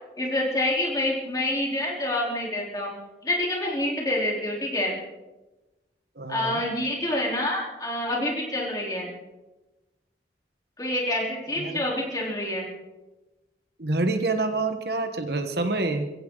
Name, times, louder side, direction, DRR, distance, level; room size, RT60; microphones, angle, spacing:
voice 1, 0.2-2.9 3.2-5.0 6.3-9.1 10.8-12.6, left 1 dB, 20° left, -2 dB, 3.7 m, -27 dB
voice 2, 6.2-6.6 11.6-11.8 13.8-16.0, right 2 dB, 65° right, 7 dB, 1.3 m, -27 dB
23.0 x 15.5 x 3.9 m, 1.1 s
head